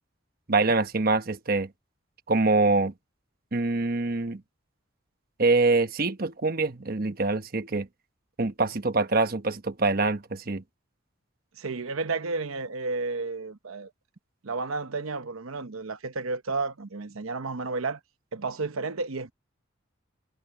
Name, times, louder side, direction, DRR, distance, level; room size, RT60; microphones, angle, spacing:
voice 1, 0.5-1.7 2.3-2.9 3.5-4.4 5.4-7.9 8.4-10.6, right 3 dB, 45° right, 1.1 m, -24 dB
voice 2, 11.6-13.9 14.4-18.0 18.3-19.3, right 3 dB, 85° right, 0.9 m, -32 dB
head